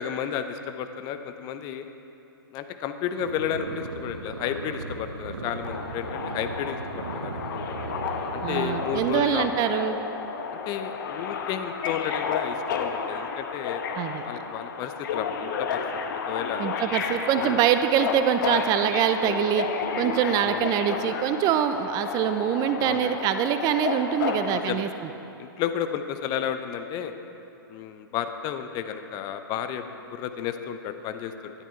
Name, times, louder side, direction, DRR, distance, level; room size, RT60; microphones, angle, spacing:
voice 1, 0.0-1.9 2.5-7.7 8.3-9.5 10.7-13.8 14.2-15.8 16.1-16.7 17.3-17.6 20.3-20.6 22.8-23.1 24.5-24.9 25.4-27.1 27.7-31.5, left 9 dB, 35° left, 8 dB, 0.7 m, -32 dB
sound 1, 3.2-9.3, right 4 dB, 85° right, 0.9 m, -37 dB
Subway metro underground, 5.6-24.6, left 6 dB, 55° left, 1.1 m, -31 dB
voice 2, 8.4-10.0 13.9-14.2 16.6-19.7 20.0-25.1, right 10 dB, 30° right, 9 dB, 0.6 m, -24 dB
13.0 x 11.0 x 4.5 m, 2.9 s
hypercardioid pair, 115°, 12 cm